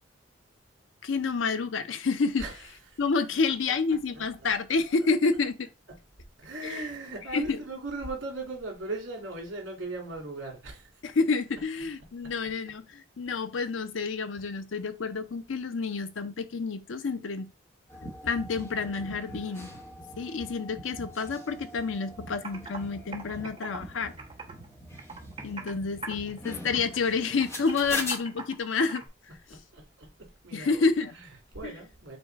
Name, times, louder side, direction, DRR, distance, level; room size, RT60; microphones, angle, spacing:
voice 1, 1.0-2.4 3.0-5.7 6.6-6.9 7.3-7.6 11.0-17.5 18.2-19.7 20.2-24.1 25.4-29.0 30.5-31.1 31.6-31.7, left 4 dB, 85° left, 0.6 m, -29 dB
voice 2, 4.1-4.5 5.0-5.1 6.4-10.9 29.5-30.1 30.4-30.8 31.1-32.2, right 2 dB, 80° right, 2.6 m, -38 dB
sound 1, 17.9-28.2, left 1 dB, 15° left, 1.0 m, -42 dB
Computer keyboard, 22.0-22.1 22.4-22.8 23.1-24.7 25.0-25.8 26.0-26.4 26.7-29.1, right 4 dB, 25° right, 1.1 m, -41 dB
5.2 x 2.2 x 4.6 m
head